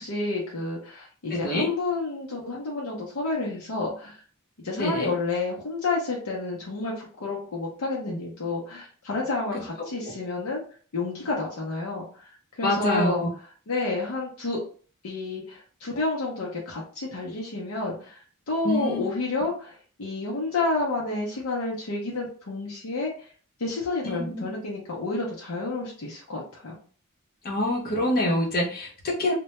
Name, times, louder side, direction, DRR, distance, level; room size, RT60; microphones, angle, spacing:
voice 1, 0.0-4.2 4.6-10.6 10.9-13.2 13.7-14.6 15.0-23.3 23.6-26.8, left 3 dB, 80° left, -3 dB, 0.6 m, -30 dB
voice 2, 1.3-1.7 4.7-5.1 9.5-9.6 12.6-13.3 18.6-19.0 24.0-24.5 27.4-29.3, left 1 dB, 45° left, 0 dB, 0.7 m, -26 dB
2.1 x 2.1 x 2.8 m, 0.42 s
head